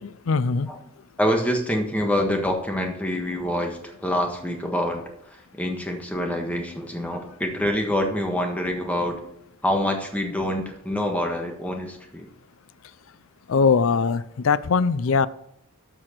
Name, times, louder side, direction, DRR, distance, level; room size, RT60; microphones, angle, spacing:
voice 1, 0.0-0.7 13.5-15.3, left 5 dB, 65° left, 0.5 m, -21 dB
voice 2, 1.2-5.0 5.6-9.2 9.6-12.3, equal, 5° left, 1.4 m, -26 dB
12.5 x 6.2 x 4.4 m
head